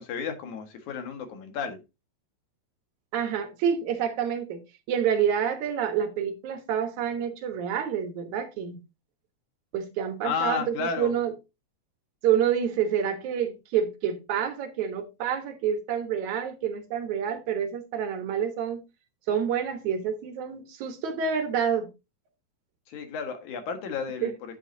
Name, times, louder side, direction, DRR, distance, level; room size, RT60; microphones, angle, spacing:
voice 1, 0.0-1.8 10.2-11.1 22.9-24.6, left 6 dB, 85° left, 3.1 m, -32 dB
voice 2, 3.1-4.6 4.9-8.8 9.7-11.3 12.2-18.8 19.3-21.9 24.2-24.3, right 8 dB, 80° right, 2.6 m, -28 dB
9.7 x 8.5 x 2.7 m
omnidirectional pair, 3.3 m